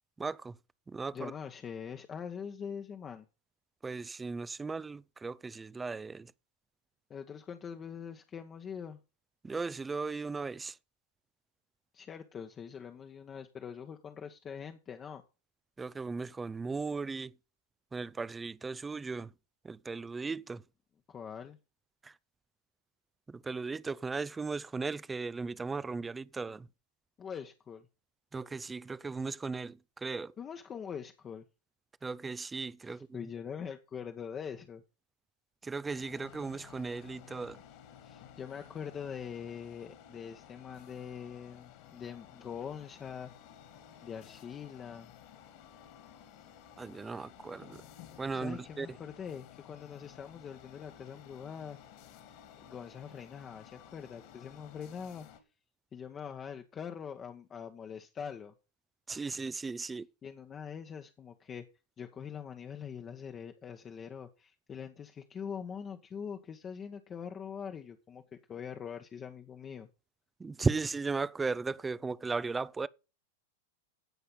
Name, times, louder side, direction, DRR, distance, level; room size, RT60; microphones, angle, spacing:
voice 1, 0.2-0.6 0.9-1.3 3.8-6.3 9.4-10.8 15.8-17.3 17.9-19.3 19.6-20.6 22.0-22.1 23.3-26.7 28.3-30.3 32.0-33.1 35.6-37.6 46.8-47.8 48.2-48.9 59.1-60.1 70.4-72.9, right 4 dB, 15° right, 0.5 m, -36 dB
voice 2, 1.1-3.3 7.1-9.0 11.9-15.2 21.1-21.6 27.2-27.9 30.4-31.4 32.8-34.8 38.0-43.3 44.0-45.1 48.3-51.8 52.6-55.3 55.9-58.5 60.2-61.7 62.0-68.2 68.5-69.9, left 7 dB, 25° left, 1.1 m, -43 dB
sound 1, 35.9-55.4, left 10 dB, 50° left, 2.6 m, -54 dB
16.5 x 5.6 x 5.5 m
hypercardioid pair, 95°, 0 cm